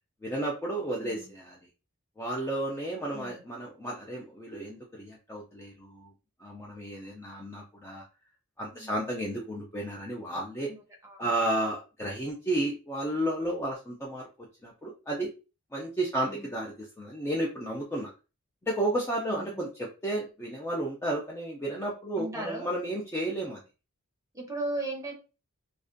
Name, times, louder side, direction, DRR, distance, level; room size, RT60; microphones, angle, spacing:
voice 1, 0.2-1.6 2.2-6.1 6.4-8.1 8.6-10.7 11.2-15.3 15.7-18.1 18.6-23.6, right 1 dB, 10° left, -2 dB, 0.3 m, -32 dB
voice 2, 1.0-1.3 3.1-3.4 8.7-9.1 10.7-10.8 11.0-11.3 16.3-16.5 19.3-19.6 22.2-22.7 24.3-25.1, right 2 dB, 15° right, 0 dB, 0.7 m, -37 dB
2.4 x 2.1 x 2.4 m, 0.31 s
head